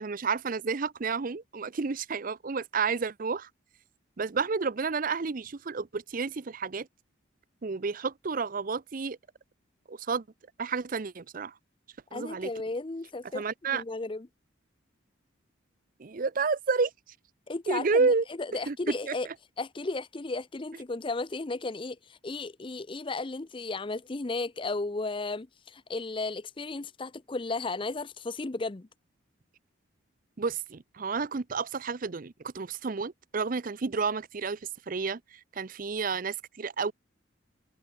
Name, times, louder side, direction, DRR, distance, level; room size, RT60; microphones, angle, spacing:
voice 1, 0.0-3.5 4.2-6.9 7.6-9.2 9.9-10.2 10.6-11.5 12.1-12.5 13.3-13.8 16.0-16.9 17.7-18.2 18.7-19.1 30.4-34.6 34.9-36.9, right 4 dB, 45° right, 0.5 m, -30 dB
voice 2, 12.1-14.3 17.5-18.1 18.4-19.3 19.6-28.9, left 3 dB, 25° left, 0.5 m, -34 dB
head